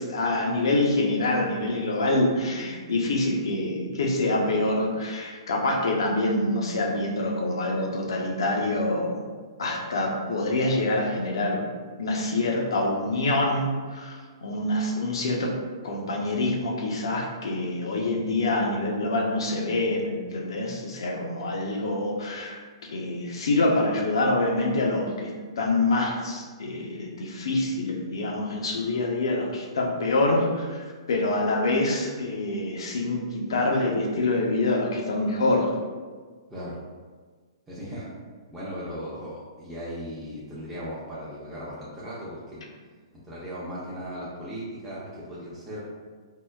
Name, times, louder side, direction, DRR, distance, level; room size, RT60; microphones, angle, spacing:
voice 1, 0.0-9.3 9.6-11.7 12.0-15.6 15.8-22.6 22.9-35.7, left 2 dB, 70° left, 0 dB, 0.5 m, -26 dB
voice 2, 37.7-38.1 38.5-42.6 43.2-45.8, equal, 10° right, -9 dB, 0.6 m, -37 dB
3.6 x 2.1 x 2.2 m, 1.5 s
hypercardioid pair, 120°, 3 cm